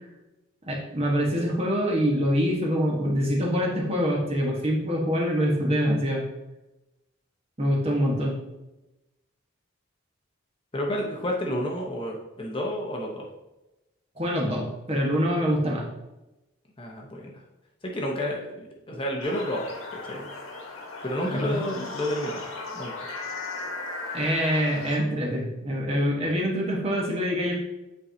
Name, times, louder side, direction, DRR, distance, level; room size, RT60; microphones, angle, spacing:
voice 1, 0.7-6.2 7.6-8.4 14.2-15.9 21.3-21.6 24.1-27.5, equal, 30° right, -2 dB, 1.2 m, -25 dB
voice 2, 10.7-13.3 16.8-17.4 17.8-20.3 21.0-22.4 22.7-23.1, equal, 25° left, -1 dB, 0.8 m, -30 dB
sound 1, 19.2-25.0, left 3 dB, 85° left, 1.5 m, -37 dB
8.5 x 4.6 x 2.7 m, 0.99 s
head